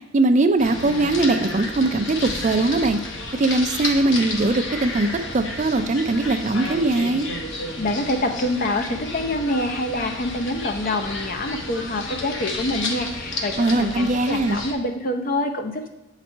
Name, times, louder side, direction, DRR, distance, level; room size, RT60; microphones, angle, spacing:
voice 1, 0.1-3.0 3.4-7.3 13.6-14.6, right 2 dB, 35° right, 8 dB, 0.4 m, -20 dB
sound 1, 0.6-14.7, left 2 dB, 70° left, 1.0 m, -32 dB
sound 2, 2.3-5.0, equal, 20° left, 1.7 m, -42 dB
voice 2, 7.8-15.9, left 1 dB, 45° left, 4 dB, 0.7 m, -26 dB
7.4 x 4.1 x 4.4 m, 0.98 s
head